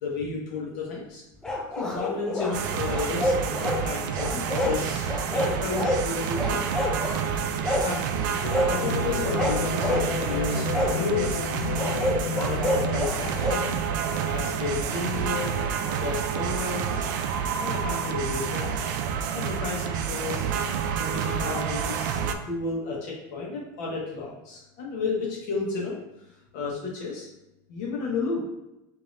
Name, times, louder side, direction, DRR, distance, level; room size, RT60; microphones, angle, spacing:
voice 1, 0.0-1.2 1.8-6.6 7.8-11.4 12.3-15.5 15.9-17.1 17.6-20.4 21.0-26.3 26.5-27.3 27.7-28.4, left 4 dB, 60° left, -3 dB, 1.0 m, -33 dB
sound 1, 1.4-2.5 2.9-3.8 4.2-4.8 5.1-6.0 6.4-7.2 7.6-7.9 8.5-8.7 9.2-10.1 10.7-10.9 11.8-13.6, left 1 dB, 5° left, 0.4 m, -27 dB
sound 2, 2.5-22.4, right 7 dB, 75° right, 0.4 m, -29 dB
sound 3, 8.4-13.4, left 4 dB, 80° left, 0.4 m, -31 dB
5.1 x 2.7 x 2.6 m, 0.93 s
cardioid pair, 170°, 10 cm